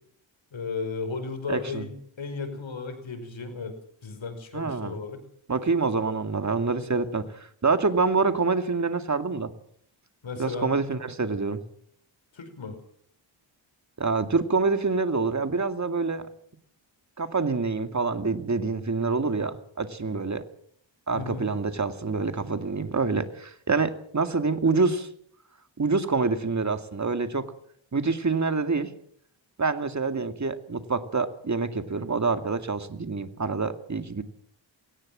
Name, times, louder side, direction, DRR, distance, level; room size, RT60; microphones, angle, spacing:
voice 1, 0.5-5.2 10.2-10.7 12.3-12.8 20.0-20.1 21.1-21.5, left 4 dB, 80° left, 8 dB, 5.2 m, -35 dB
voice 2, 1.5-1.8 4.5-5.0 5.5-9.5 10.4-11.6 14.0-16.3 17.2-20.4 21.1-25.1 25.8-27.5 27.9-28.9 29.6-34.2, right 4 dB, 35° right, 9 dB, 2.3 m, -26 dB
20.0 x 18.5 x 7.6 m, 0.64 s
wide cardioid pair, 80°, 46 cm